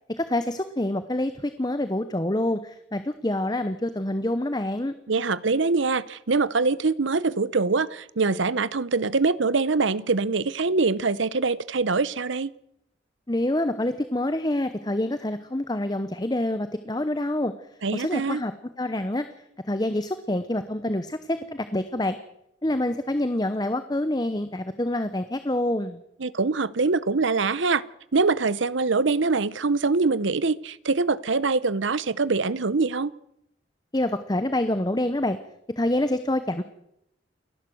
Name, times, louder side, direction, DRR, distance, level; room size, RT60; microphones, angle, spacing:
voice 1, 0.2-4.9 13.3-17.5 17.9-19.3 19.6-22.2 22.6-26.0 33.9-35.4 35.8-36.6, left 1 dB, 20° left, 11 dB, 0.8 m, -26 dB
voice 2, 5.1-12.5 17.8-18.4 26.2-27.8 28.1-33.1, right 4 dB, 75° right, 19 dB, 0.8 m, -24 dB
29.0 x 12.0 x 7.8 m, 0.78 s
head